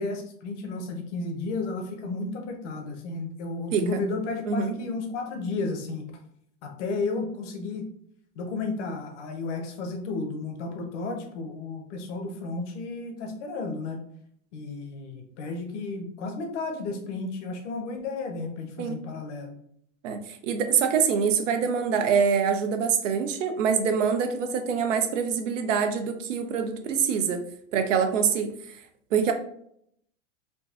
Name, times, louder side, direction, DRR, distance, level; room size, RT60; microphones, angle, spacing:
voice 1, 0.0-6.0 6.6-7.9 8.3-14.0 14.5-19.5, left 3 dB, 65° left, 4 dB, 0.9 m, -33 dB
voice 2, 3.7-4.0 4.5-4.7 18.8-19.0 20.0-27.4 27.7-28.8 29.1-29.3, right 6 dB, 80° right, 6 dB, 0.6 m, -25 dB
3.8 x 2.3 x 2.4 m, 0.68 s
hypercardioid pair, 115°, 37 cm